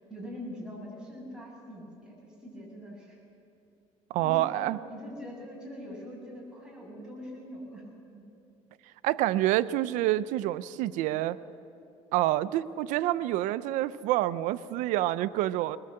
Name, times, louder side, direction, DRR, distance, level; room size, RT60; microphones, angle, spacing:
voice 1, 0.1-3.2 4.2-4.6 4.9-7.9 8.1-8.2, equal, 5° right, -3 dB, 7.2 m, -43 dB
voice 2, 4.1-4.8 9.0-11.4 12.1-15.8, right 15 dB, 85° right, 15 dB, 0.6 m, -27 dB
20.5 x 20.5 x 7.8 m, 2.7 s
cardioid pair, 120°, 13 cm